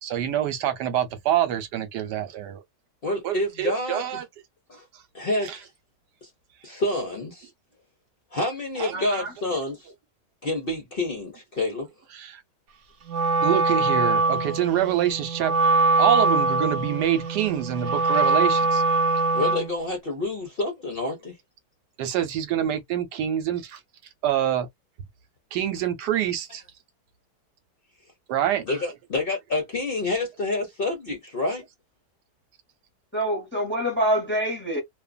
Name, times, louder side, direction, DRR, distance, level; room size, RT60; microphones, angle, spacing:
voice 1, 0.0-2.6 3.2-4.2 5.5-5.6 8.8-9.1 12.1-12.4 13.4-15.5 16.0-18.8 22.0-23.8 24.2-24.7 25.5-26.6 28.3-28.6, right 11 dB, 80° right, 1.2 m, -26 dB
voice 2, 3.0-4.2 4.7-4.8 5.1-5.7 6.2-6.3 6.6-7.5 8.3-9.9 10.4-11.9 19.3-21.3 28.6-31.6, left 2 dB, 45° left, 0.7 m, -28 dB
voice 3, 8.9-9.3 33.1-34.8, equal, 10° left, 0.8 m, -26 dB
Wind instrument woodwind instrument, 13.0-19.8, right 3 dB, 55° right, 0.8 m, -23 dB
2.6 x 2.4 x 2.3 m
omnidirectional pair, 1.8 m